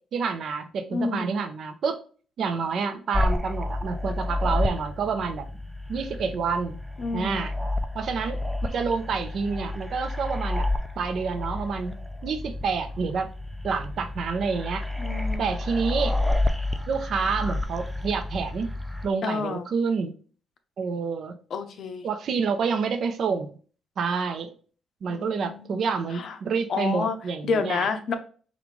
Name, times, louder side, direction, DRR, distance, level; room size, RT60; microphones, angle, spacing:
voice 1, 0.1-2.0 2.4-5.5 5.9-6.8 7.1-7.5 7.9-8.4 8.7-10.7 11.0-12.0 12.2-13.3 13.6-14.8 15.4-16.1 16.9-18.7 19.0-20.1 20.8-21.3 22.0-23.5 24.0-24.5 25.0-27.9, right 5 dB, 60° right, 8 dB, 0.6 m, -28 dB
voice 2, 0.9-1.3 7.0-7.4 15.0-15.5 19.2-19.7 21.5-22.1 25.1-25.8 26.1-26.3 26.7-27.2 27.4-28.1, left 4 dB, 60° left, 8 dB, 0.6 m, -29 dB
sound 1, 3.1-19.1, left 2 dB, 5° right, 0.5 m, -30 dB
5.1 x 2.4 x 3.2 m, 0.40 s
cardioid pair, 90°, 0 cm